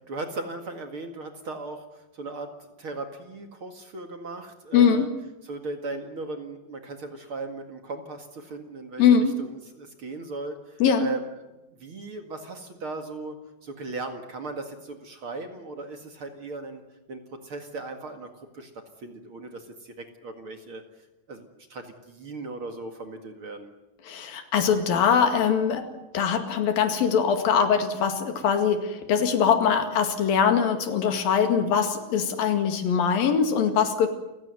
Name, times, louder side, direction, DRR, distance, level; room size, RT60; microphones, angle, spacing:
voice 1, 0.0-5.1 5.4-9.0 9.4-11.3 11.8-16.8 17.1-18.7 19.0-20.8 21.3-23.7, right 3 dB, 45° right, 5 dB, 2.4 m, -37 dB
voice 2, 4.7-5.1 9.0-9.3 10.8-11.1 24.1-25.9 26.1-34.1, left 7 dB, 80° left, 7 dB, 3.9 m, -22 dB
29.0 x 16.0 x 9.5 m, 0.99 s
omnidirectional pair, 4.0 m